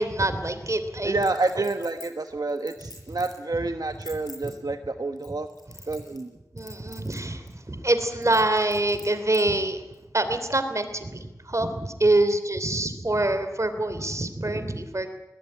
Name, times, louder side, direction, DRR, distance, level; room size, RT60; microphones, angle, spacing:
voice 1, 0.0-1.1 4.4-4.5 6.5-9.8 10.1-15.1, right 2 dB, 50° right, 9 dB, 3.2 m, -25 dB
voice 2, 1.0-5.5 5.9-6.3, right 3 dB, 80° right, 6 dB, 1.2 m, -28 dB
Chink clink, 1.2-3.4 3.9-4.5 5.2-6.3 6.6-7.2 7.5-7.6 8.2-9.4 9.9-10.0, left 2 dB, 90° left, 7.9 m, -45 dB
21.5 x 19.0 x 9.7 m, 1.0 s
wide cardioid pair, 55°, 7 cm